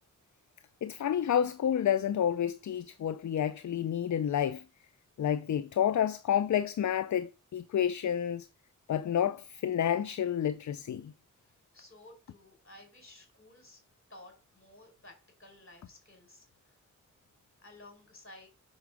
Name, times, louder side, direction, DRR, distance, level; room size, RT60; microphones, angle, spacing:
voice 1, 0.8-4.6 5.2-8.5 8.9-11.1, left 9 dB, 65° left, 0.5 m, -29 dB
voice 2, 11.4-13.8 14.1-16.7 17.6-18.5, left 2 dB, 40° left, 4.8 m, -55 dB
6.3 x 5.9 x 4.8 m
cardioid pair, 65°, 31 cm